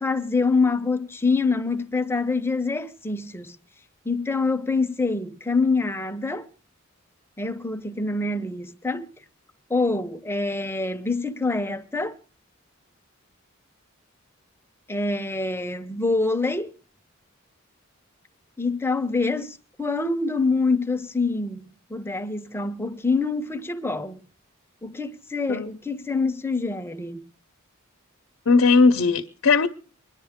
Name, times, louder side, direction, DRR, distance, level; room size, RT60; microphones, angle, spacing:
voice 1, 0.0-3.6 4.0-6.5 7.4-9.1 9.7-12.1 14.9-16.7 18.6-24.3 24.8-27.2, left 3 dB, 10° left, 0.7 m, -25 dB
voice 2, 28.5-29.7, left 4 dB, 70° left, 0.8 m, -18 dB
24.5 x 11.0 x 3.6 m
head